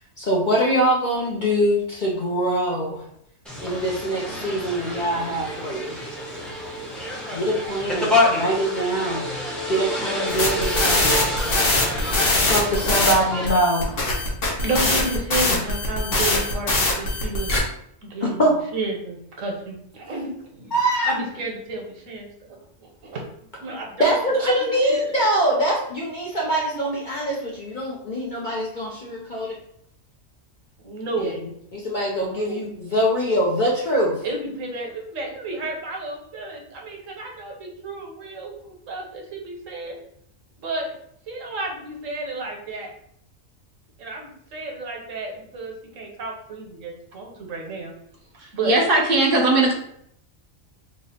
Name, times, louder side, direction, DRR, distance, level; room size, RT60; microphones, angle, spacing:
voice 1, 0.2-3.0 3.6-6.0 7.3-11.3 12.4-14.0 18.2-18.5 20.7-21.1 24.0-29.6 31.2-31.3 31.7-34.2, right 1 dB, 50° left, -3 dB, 0.6 m, -23 dB
sound 1, 3.4-13.5, left 1 dB, ahead, 0.4 m, -27 dB
sound 2, 10.3-13.1 13.5-17.6, left 2 dB, 65° left, 1.3 m, -22 dB
voice 2, 14.6-17.5 18.0-20.8 21.0-23.2 23.6-24.5 24.8-25.1 30.8-31.4 32.2-32.6 34.2-40.0 40.6-40.9 41.3-42.9 44.0-47.9 48.5-48.8, right 2 dB, 75° right, 1 dB, 1.2 m, -32 dB
voice 3, 48.4-49.7, right 2 dB, 50° right, 0 dB, 0.8 m, -19 dB
3.0 x 2.4 x 4.1 m, 0.70 s
omnidirectional pair, 1.4 m